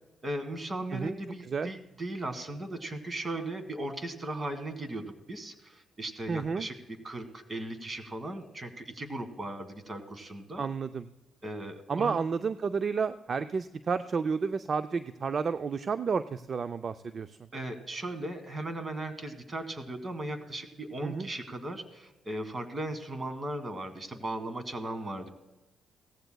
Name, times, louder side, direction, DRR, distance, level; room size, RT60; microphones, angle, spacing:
voice 1, 0.2-6.7 7.0-10.6 11.4-12.2 17.5-25.3, right 1 dB, 35° right, 9 dB, 1.7 m, -37 dB
voice 2, 6.3-6.7 10.6-11.1 11.9-17.4 21.0-21.3, right 5 dB, 50° right, 11 dB, 0.4 m, -31 dB
17.5 x 15.0 x 2.3 m, 1.0 s
supercardioid pair, 65°, 0 cm